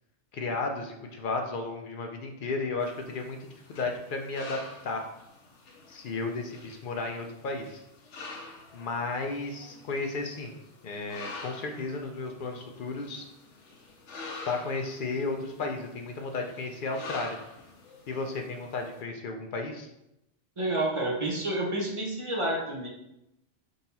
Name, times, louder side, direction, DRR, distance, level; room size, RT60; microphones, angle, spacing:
voice 1, 0.3-3.4 3.7-5.1 5.9-7.8 8.7-10.5 10.8-13.3 14.5-17.4 18.1-19.9, left 3 dB, 60° left, 3 dB, 0.6 m, -33 dB
sound 1, 2.8-19.0, left 3 dB, 80° left, 1.0 m, -47 dB
voice 2, 20.6-22.9, right 1 dB, 30° right, -2 dB, 0.6 m, -29 dB
3.9 x 2.8 x 4.0 m, 0.86 s
omnidirectional pair, 1.2 m